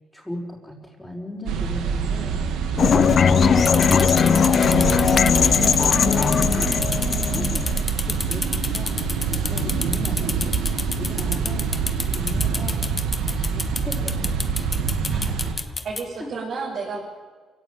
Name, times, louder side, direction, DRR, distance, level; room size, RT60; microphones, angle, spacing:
voice 1, 0.1-2.5 2.9-10.6 11.0-12.8 13.3-14.7 16.2-16.3, equal, 5° left, -5 dB, 5.7 m, -37 dB
sound 1, 1.5-15.5, right 6 dB, 90° right, 2.7 m, -26 dB
sound 2, 2.8-7.8, left 7 dB, 50° left, 0.8 m, -19 dB
sound 3, 3.6-16.0, left 3 dB, 25° left, 1.5 m, -30 dB
voice 2, 15.1-17.0, right 4 dB, 55° right, -5 dB, 7.7 m, -33 dB
28.0 x 17.0 x 9.3 m, 1.5 s
cardioid pair, 90°, 0 cm